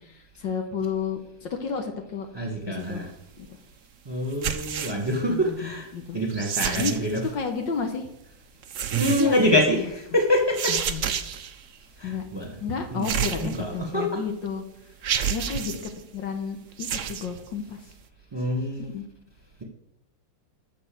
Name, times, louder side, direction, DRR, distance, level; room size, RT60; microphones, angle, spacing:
voice 1, 0.0-2.3 2.7-3.1 3.4-3.6 5.3-6.2 6.8-6.9 7.3-8.1 9.1-9.9 10.7-11.1 12.0-12.3 12.6-14.6 15.3-17.8 18.8-19.1, left 6 dB, 60° left, 4 dB, 1.8 m, -32 dB
voice 2, 2.3-3.1 4.1-5.9 6.1-7.3 9.0-10.8 12.0-12.5 12.9-14.2 15.4-15.5 18.3-18.9, equal, 15° right, 2 dB, 1.5 m, -26 dB
sound 1, 4.3-5.1 6.3-7.2 8.6-9.5 10.5-11.5 13.0-13.9 14.5-14.6 15.0-15.9 16.7-17.3, right 8 dB, 85° right, 0.6 m, -29 dB
12.5 x 4.8 x 7.8 m, 0.79 s
omnidirectional pair, 2.4 m